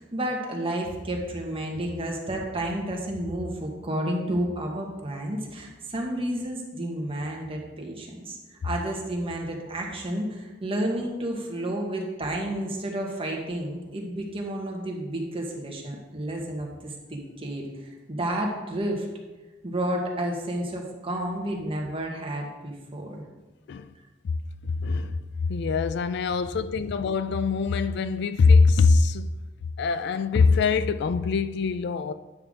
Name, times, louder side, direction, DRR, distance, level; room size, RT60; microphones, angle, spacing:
voice 1, 0.0-19.1 19.6-23.2, right 1 dB, 30° right, 1.3 m, -31 dB
voice 2, 24.6-29.3 29.8-32.1, left 4 dB, 60° left, 0.3 m, -23 dB
9.0 x 5.7 x 3.7 m
head